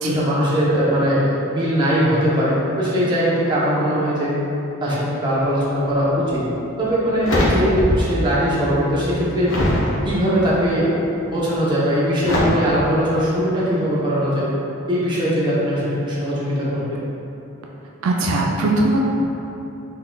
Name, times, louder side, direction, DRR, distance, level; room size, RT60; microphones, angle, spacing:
voice 1, 0.0-4.3 4.8-6.4 6.8-9.5 10.0-10.9 11.3-14.5 14.9-16.8, equal, 20° right, -8 dB, 0.7 m, -20 dB
sound 1, 6.3-6.4 6.9-8.2 8.5-9.9 10.5-10.9 12.2-12.4, left 1 dB, 65° left, 0.7 m, -22 dB
voice 2, 18.0-19.0, right 2 dB, 75° right, -1 dB, 0.3 m, -20 dB
3.9 x 3.8 x 2.2 m, 3.0 s
head